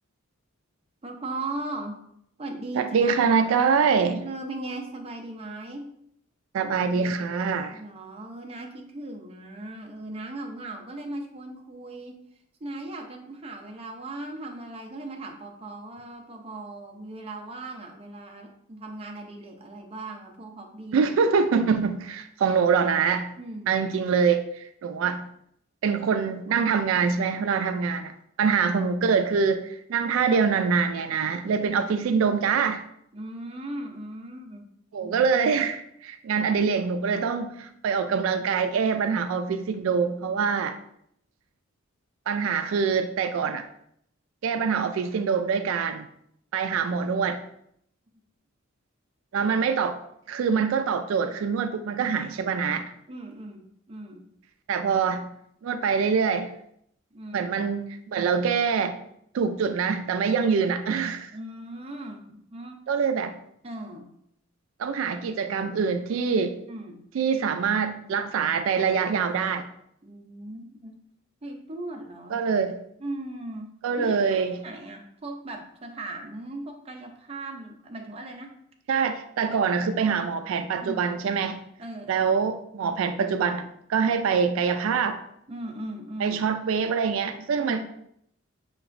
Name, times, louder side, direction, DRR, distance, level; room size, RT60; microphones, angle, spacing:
voice 1, 1.0-2.0 2.4-3.4 3.9-5.9 7.7-12.2 12.6-21.1 23.4-23.7 31.8-31.9 33.1-34.6 35.0-35.3 53.1-54.2 57.1-57.5 61.3-62.8 63.6-64.1 64.9-65.2 66.7-67.0 70.0-71.0 71.4-72.4 73.0-78.6 79.5-79.6 80.0-80.2 80.8-81.1 81.8-82.5 84.2-84.4 85.5-86.5 87.6-87.8, right 2 dB, 30° right, 2 dB, 0.6 m, -38 dB
voice 2, 2.7-4.2 6.5-7.8 20.9-23.3 23.7-25.3 25.8-32.8 34.9-40.8 42.3-43.7 44.4-46.1 46.5-47.4 49.3-50.0 50.3-52.9 54.7-55.3 55.6-56.5 57.3-59.0 59.3-61.3 62.9-63.3 64.8-66.6 67.1-69.7 72.3-72.8 73.8-74.6 78.9-81.6 82.1-85.2 86.2-87.8, right 6 dB, 70° right, 8 dB, 0.3 m, -24 dB
6.6 x 3.0 x 2.5 m, 0.73 s
head